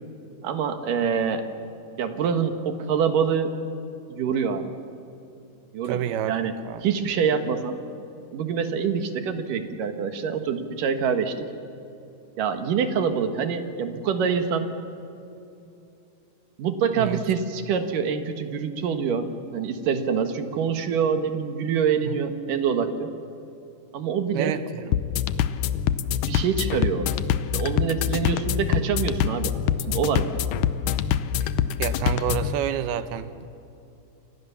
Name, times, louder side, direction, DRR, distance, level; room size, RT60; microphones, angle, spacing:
voice 1, 0.4-1.4 2.0-3.5 4.1-4.7 5.7-6.5 6.8-7.8 8.3-11.5 12.4-14.7 16.6-19.3 19.5-23.1 23.9-24.6 26.3-27.1 27.5-29.5 29.9-30.4, right 6 dB, 65° right, 2.8 m, -25 dB
voice 2, 5.9-6.4 6.7-6.8 17.0-17.2 22.1-22.2 24.3-24.9 31.8-33.5, right 10 dB, 80° right, 2.8 m, -28 dB
sound 1, 24.9-32.5, left 9 dB, 75° left, 2.0 m, -25 dB
29.5 x 25.0 x 7.1 m
omnidirectional pair, 4.6 m